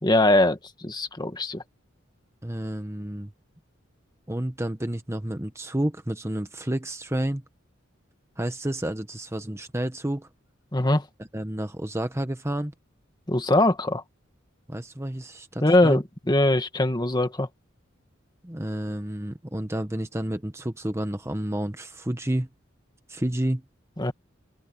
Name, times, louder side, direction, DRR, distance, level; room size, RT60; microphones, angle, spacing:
voice 1, 0.0-1.6 10.7-11.1 13.3-14.0 15.6-17.5 24.0-24.1, left 1 dB, 20° left, 1.7 m, -22 dB
voice 2, 2.4-3.3 4.3-7.4 8.4-10.3 11.3-12.7 14.7-16.0 18.4-22.5 23.1-23.6, right 1 dB, 15° right, 1.1 m, -30 dB
open air
head